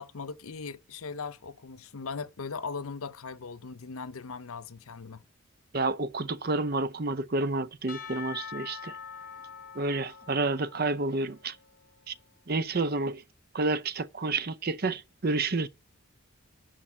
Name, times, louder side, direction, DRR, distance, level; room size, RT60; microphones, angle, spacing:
voice 1, 0.0-5.2, left 5 dB, 80° left, 0.7 m, -39 dB
voice 2, 5.7-9.0 9.7-11.6 12.1-12.2 12.5-13.2 13.5-15.7, right 3 dB, 45° right, 0.6 m, -29 dB
Percussion / Church bell, 7.9-12.1, left 7 dB, 45° left, 0.9 m, -44 dB
10.5 x 4.4 x 7.4 m
head